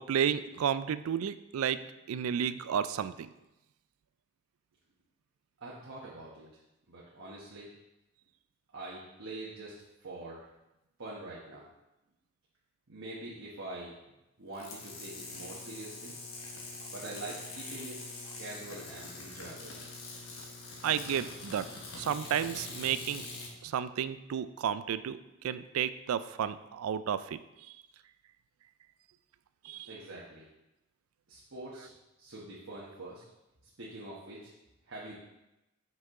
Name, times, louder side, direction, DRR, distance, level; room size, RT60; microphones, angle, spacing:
voice 1, 0.0-3.3 20.8-21.7 22.0-23.3 23.6-27.4 29.6-29.9, right 8 dB, 90° right, 14 dB, 0.3 m, -32 dB
voice 2, 5.6-6.5 6.9-7.7 8.7-9.7 10.0-10.4 11.0-11.7 12.9-13.9 14.4-16.1 16.9-18.0 18.4-19.7 29.9-30.5 31.3-31.9 32.2-33.2 33.8-34.5 34.9-35.1, right 2 dB, 65° right, -6 dB, 1.1 m, -44 dB
sound 1, 14.5-23.5, left 3 dB, 90° left, 1.3 m, -44 dB
5.8 x 5.4 x 3.7 m, 0.95 s
head